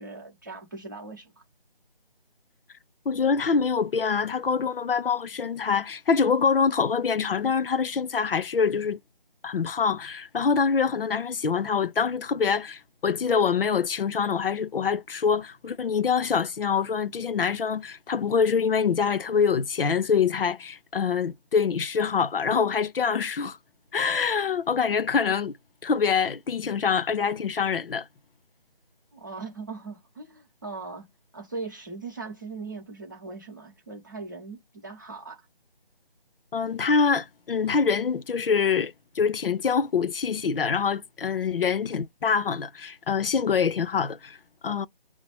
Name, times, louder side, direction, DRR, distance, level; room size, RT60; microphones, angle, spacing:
voice 1, 0.0-1.3 29.1-31.1 31.3-35.4, right 3 dB, 20° right, 0.8 m, -39 dB
voice 2, 3.1-9.0 9.4-23.6 23.9-25.5 25.8-28.1 36.5-44.4 44.6-44.9, left 6 dB, 75° left, 0.5 m, -25 dB
5.9 x 2.0 x 3.0 m
figure-of-eight pair, 170°, 29 cm